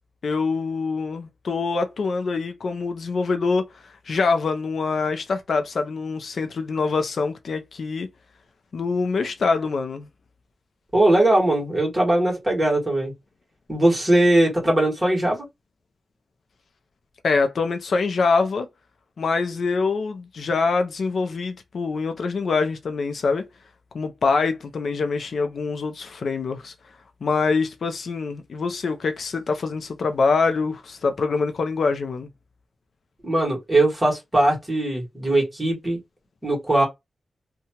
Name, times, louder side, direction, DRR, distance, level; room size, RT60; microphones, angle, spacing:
voice 1, 0.2-8.1 8.7-10.1 17.2-18.7 19.2-23.5 23.9-26.7 27.2-32.3, left 4 dB, 65° left, 0.4 m, -24 dB
voice 2, 10.9-13.1 13.7-15.4 33.2-36.0 36.4-36.8, right 1 dB, 15° right, 1.5 m, -20 dB
2.8 x 2.2 x 2.8 m
wide cardioid pair, 155°, 0 cm